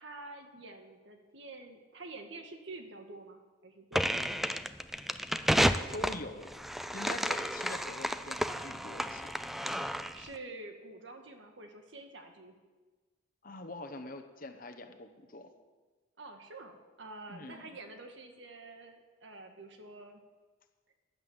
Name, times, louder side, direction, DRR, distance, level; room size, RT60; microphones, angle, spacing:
voice 1, 0.0-4.1 10.1-12.5 16.2-20.2, right 2 dB, 70° right, 5 dB, 1.7 m, -48 dB
sound 1, 3.9-10.3, equal, ahead, 0.4 m, -32 dB
voice 2, 5.9-6.5 6.9-9.4 13.4-15.5 17.3-17.7, left 2 dB, 45° left, 7 dB, 1.2 m, -44 dB
12.0 x 10.5 x 7.3 m, 1.3 s
head